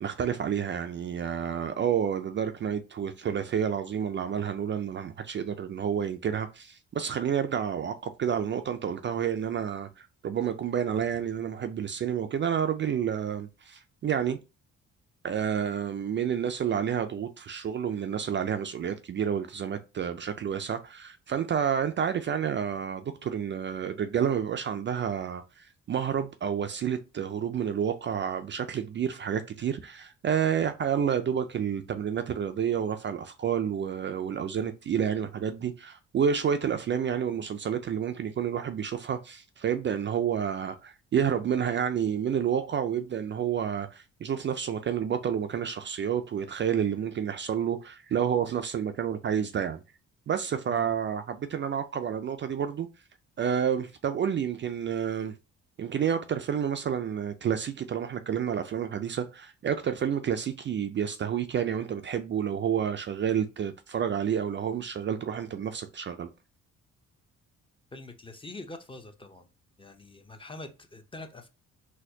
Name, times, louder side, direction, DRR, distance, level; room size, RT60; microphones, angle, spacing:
voice 1, 0.0-14.4 15.2-49.8 50.3-52.9 53.4-55.3 55.8-66.3, right 8 dB, 40° right, 0.4 m, -29 dB
voice 2, 67.9-69.5 69.8-71.5, left 2 dB, 15° left, 0.6 m, -44 dB
4.2 x 2.3 x 2.7 m
cardioid pair, 90°, 30 cm